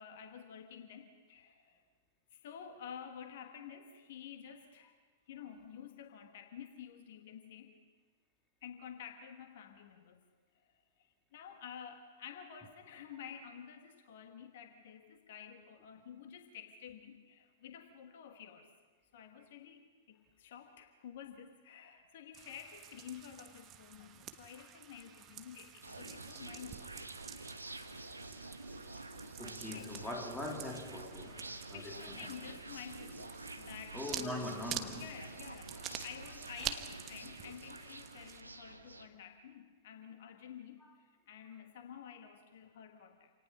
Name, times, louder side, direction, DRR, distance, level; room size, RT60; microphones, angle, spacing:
voice 1, 0.0-1.8 2.3-4.9 5.3-7.8 8.6-10.2 10.5-18.7 19.1-26.9 29.7-30.0 31.2-31.5 31.7-34.4 35.0-43.3, left 8 dB, 50° left, 6 dB, 1.4 m, -51 dB
sound 1, 22.3-38.4, right 10 dB, 30° right, 1.1 m, -48 dB
sound 2, 25.8-39.1, right 2 dB, 80° right, 1.2 m, -48 dB
voice 2, 29.4-32.2 33.9-35.1, left 2 dB, 5° left, 1 dB, 2.8 m, -42 dB
27.0 x 18.5 x 5.7 m, 1.5 s
figure-of-eight pair, 100°, 0 cm